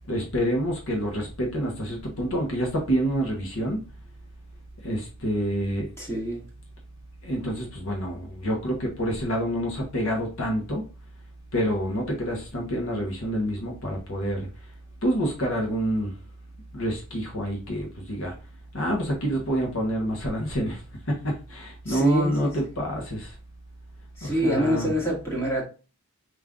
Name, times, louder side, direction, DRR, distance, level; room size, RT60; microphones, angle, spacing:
voice 1, 0.1-3.8 4.8-5.9 7.3-10.8 11.5-14.4 15.0-16.1 16.7-18.3 18.7-20.8 21.1-23.3 24.2-24.9, equal, 65° left, 1.2 m, -27 dB
voice 2, 6.0-6.4 21.9-22.5 24.2-25.6, right 1 dB, 10° left, 2.1 m, -25 dB
5.3 x 3.6 x 2.5 m
head